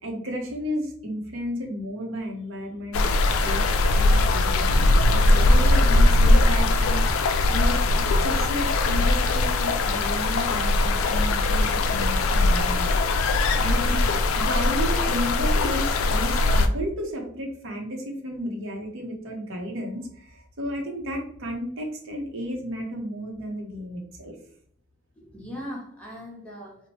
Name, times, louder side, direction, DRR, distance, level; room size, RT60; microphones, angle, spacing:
voice 1, 0.0-3.0 3.3-3.6 3.9-12.9 13.5-14.0 14.4-24.3, equal, 70° right, 1 dB, 0.8 m, -33 dB
sound 1, 2.9-16.7, left 2 dB, 80° left, 0.3 m, -20 dB
voice 2, 13.8-14.1 25.2-26.8, equal, 5° left, -4 dB, 0.9 m, -39 dB
2.9 x 2.1 x 3.0 m, 0.63 s
head